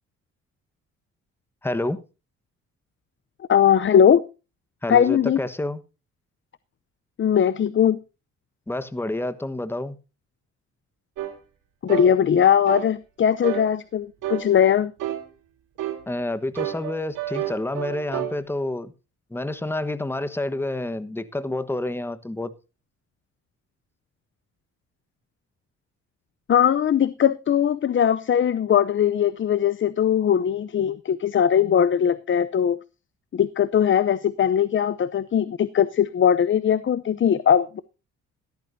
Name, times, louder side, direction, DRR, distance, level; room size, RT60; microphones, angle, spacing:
voice 1, 1.6-2.0 4.8-5.8 8.7-9.9 16.1-18.9 19.3-22.5, left 2 dB, 5° left, 1.2 m, -28 dB
voice 2, 3.5-4.2 4.9-5.4 7.2-8.0 11.8-14.9 26.5-32.8 33.3-37.8, left 9 dB, 40° left, 0.7 m, -20 dB
sound 1, 11.2-11.4 11.9-12.1 12.7-12.9 13.4-13.7 14.2-14.5 15.0-15.3 15.8-16.0 16.6-18.4, right 12 dB, 85° right, 3.4 m, -29 dB
14.5 x 13.5 x 2.7 m
cardioid pair, 90°, 30 cm